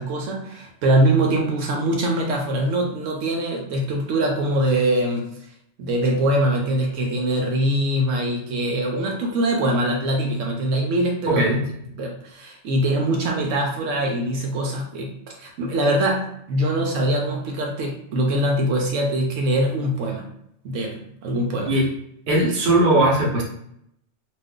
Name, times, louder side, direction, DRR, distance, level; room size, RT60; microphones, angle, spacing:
voice 1, 0.0-5.3 5.8-11.6 12.0-15.1 15.4-20.3 20.6-21.7, right 1 dB, 85° right, 1 dB, 1.0 m, -23 dB
voice 2, 11.3-11.7 21.7-21.9 22.3-23.4, right 1 dB, 50° right, -2 dB, 1.0 m, -18 dB
2.5 x 2.4 x 3.5 m, 0.73 s
omnidirectional pair, 1.3 m